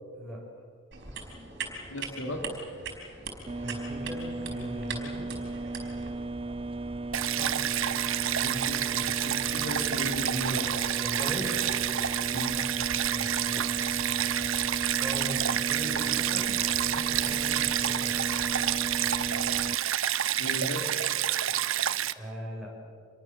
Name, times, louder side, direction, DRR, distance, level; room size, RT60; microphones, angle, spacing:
sound 1, 0.9-6.1, right 4 dB, 55° right, 4.6 m, -41 dB
voice 1, 1.9-2.4 8.4-10.9 12.3-12.6 20.4-20.9, equal, 90° left, 4 dB, 3.0 m, -36 dB
sound 2, 3.5-19.7, right 2 dB, 25° right, 0.6 m, -36 dB
voice 2, 3.6-5.3 7.3-7.6 11.0-11.5 13.2-13.6 15.0-18.2 22.1-22.7, equal, ahead, -4 dB, 6.8 m, -40 dB
Stream, 7.1-22.1, right 11 dB, 80° right, 0.8 m, -29 dB
27.0 x 22.5 x 7.5 m, 2.2 s
head